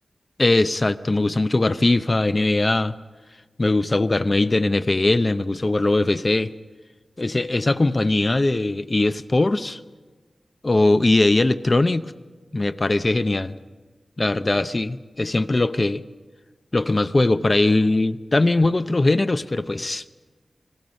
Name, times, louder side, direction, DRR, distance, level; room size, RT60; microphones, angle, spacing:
voice 1, 0.4-2.9 3.6-6.5 7.2-9.8 10.6-12.1 12.5-13.6 14.2-16.0 16.7-20.0, left 2 dB, 35° left, 0.6 m, -20 dB
29.5 x 20.5 x 5.3 m
wide cardioid pair, 100°, 0 cm